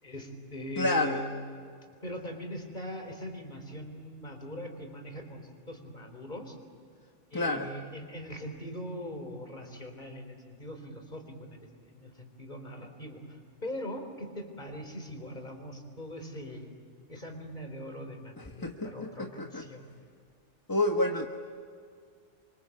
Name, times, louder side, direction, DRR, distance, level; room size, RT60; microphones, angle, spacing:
voice 1, 0.0-1.3 2.0-6.6 7.3-16.7 17.1-19.9, equal, 35° left, 4 dB, 4.1 m, -41 dB
voice 2, 0.8-1.2 7.3-7.7 18.6-19.1 19.4-19.6 20.7-21.3, left 2 dB, 15° left, 2 dB, 1.2 m, -28 dB
28.5 x 24.5 x 8.4 m, 2.2 s
omnidirectional pair, 1.3 m